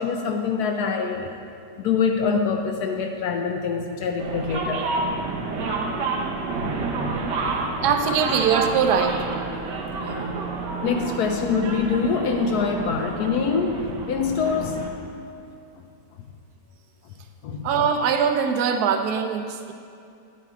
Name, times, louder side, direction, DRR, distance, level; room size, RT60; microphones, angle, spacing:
voice 1, 0.0-1.3 1.8-4.8 5.5-5.6 5.8-5.9 6.2-6.3 6.6-8.2 9.0-9.1 10.0-10.4 10.8-15.1 17.4-17.9, left 5 dB, 75° left, 4 dB, 1.1 m, -25 dB
sound 1, 4.2-14.9, right 3 dB, 85° right, 1.6 m, -29 dB
voice 2, 7.8-9.2 17.6-19.7, right 7 dB, 70° right, 6 dB, 1.2 m, -22 dB
9.4 x 9.1 x 3.6 m, 2.5 s
omnidirectional pair, 1.8 m